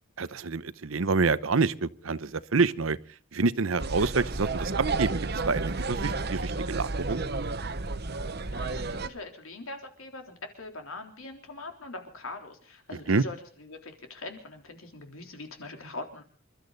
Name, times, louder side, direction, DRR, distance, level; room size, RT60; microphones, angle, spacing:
voice 1, 0.2-3.0 3.3-5.1 5.5-7.2 13.1-13.2, right 4 dB, 75° right, 0.8 m, -27 dB
sound 1, 3.8-9.1, right 3 dB, 50° right, 1.0 m, -31 dB
voice 2, 8.5-16.2, left 2 dB, 85° left, 3.6 m, -42 dB
28.0 x 13.0 x 4.0 m
head